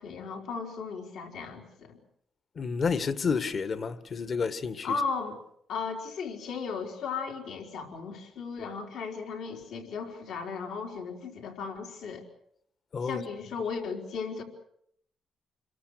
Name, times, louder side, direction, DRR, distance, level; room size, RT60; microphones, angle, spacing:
voice 1, 0.0-2.0 4.8-5.4 5.7-12.2 13.0-14.4, left 5 dB, 80° left, 4.3 m, -36 dB
voice 2, 2.6-5.0 12.9-13.2, left 5 dB, 50° left, 1.8 m, -30 dB
28.0 x 23.0 x 6.6 m
supercardioid pair, 70°, 0 cm